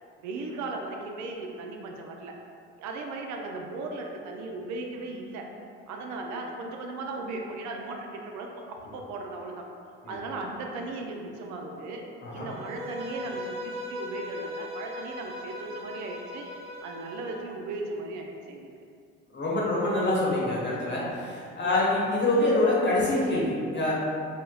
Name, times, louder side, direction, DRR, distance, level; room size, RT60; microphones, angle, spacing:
voice 1, 0.2-2.3 2.8-5.5 5.9-9.6 10.0-12.0 12.3-16.5 16.8-18.7 21.6-21.8, right 2 dB, 65° right, 1 dB, 0.5 m, -37 dB
Bowed string instrument, 12.5-17.5, left 1 dB, 20° right, 0.5 m, -38 dB
voice 2, 19.3-23.9, left 2 dB, 35° left, -6 dB, 1.0 m, -25 dB
3.8 x 2.1 x 2.3 m, 2.4 s
supercardioid pair, 65°, 31 cm